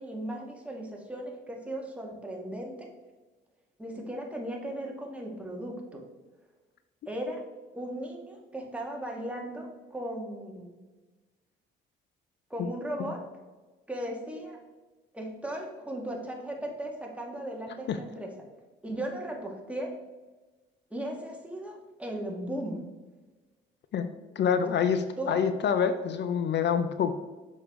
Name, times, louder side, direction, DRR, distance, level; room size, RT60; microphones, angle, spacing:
voice 1, 0.0-2.9 3.8-6.0 7.0-7.4 7.7-10.8 12.5-13.2 13.9-14.6 15.1-18.3 18.8-19.9 20.9-22.8 25.2-25.4, right 1 dB, 5° right, 0 dB, 1.8 m, -37 dB
voice 2, 23.9-27.1, left 7 dB, 60° left, 10 dB, 0.6 m, -27 dB
7.0 x 6.4 x 3.7 m, 1.2 s
cardioid pair, 90°, 20 cm